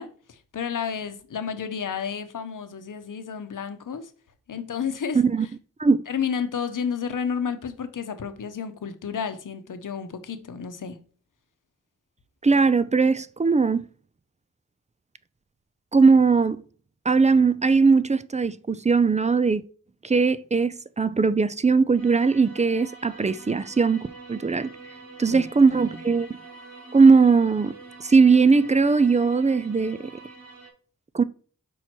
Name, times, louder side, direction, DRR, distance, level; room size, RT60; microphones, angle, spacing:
voice 1, 0.0-4.1 4.5-5.2 6.1-11.0 25.3-25.4, left 7 dB, 70° left, 0.9 m, -31 dB
voice 2, 5.1-5.5 5.8-6.0 12.4-13.8 15.9-16.6 17.1-19.6 20.0-24.7 25.2-26.3 26.9-27.7 28.0-30.0 31.1-31.2, right 4 dB, 20° right, 0.4 m, -19 dB
sound 1, 22.0-30.7, right 3 dB, 80° right, 2.3 m, -45 dB
5.4 x 4.4 x 4.4 m
cardioid pair, 60°, 33 cm